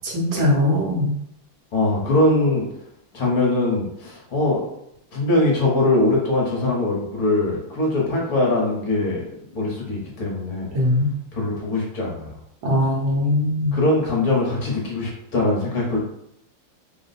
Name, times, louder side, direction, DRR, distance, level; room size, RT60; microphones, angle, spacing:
voice 1, 0.0-1.1 10.7-11.1 12.6-13.8, left 1 dB, 65° right, -3 dB, 1.7 m, -20 dB
voice 2, 1.7-2.6 3.1-4.7 5.1-10.7 11.3-12.3 13.7-16.0, left 2 dB, 55° left, -3 dB, 1.3 m, -22 dB
3.8 x 2.2 x 4.0 m, 0.76 s
omnidirectional pair, 2.4 m